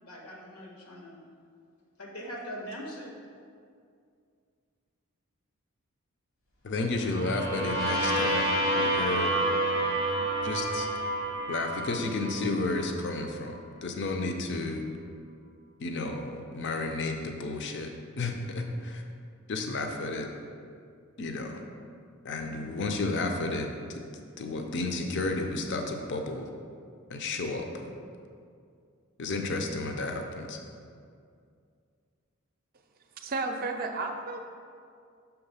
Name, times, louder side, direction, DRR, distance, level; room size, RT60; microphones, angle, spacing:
voice 1, 0.0-1.2 2.0-3.1, equal, 85° left, -1 dB, 1.2 m, -41 dB
voice 2, 6.6-8.4 8.7-9.3 10.4-10.9 11.5-14.8 15.8-19.0 19.5-20.3 21.2-21.6 22.2-24.0 24.4-26.5 27.1-27.9 29.2-30.6, left 2 dB, 55° left, 4 dB, 0.5 m, -32 dB
sound 1, 7.0-12.9, right 1 dB, 70° left, 1.1 m, -29 dB
voice 3, 33.2-34.4, right 3 dB, 45° right, 4 dB, 0.5 m, -32 dB
5.8 x 3.6 x 5.5 m, 2.3 s
head